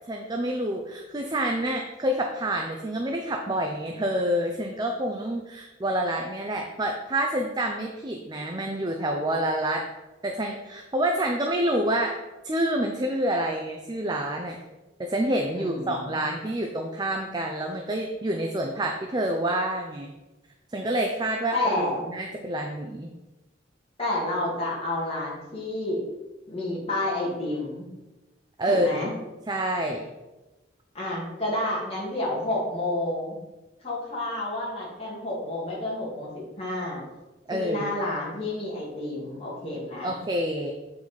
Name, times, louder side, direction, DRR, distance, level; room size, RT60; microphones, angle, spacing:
voice 1, 0.1-9.9 10.2-12.2 12.4-14.6 15.0-20.1 20.7-23.1 28.6-29.1 29.5-30.1 37.5-37.9 40.0-40.7, right 1 dB, 25° right, 2 dB, 0.6 m, -28 dB
voice 2, 15.5-16.2 21.5-22.0 24.0-26.0 26.5-27.9 28.7-29.1 30.9-33.4 33.8-37.0 37.5-40.2, left 1 dB, 30° left, -5 dB, 2.3 m, -30 dB
8.0 x 4.7 x 4.3 m, 1.1 s
head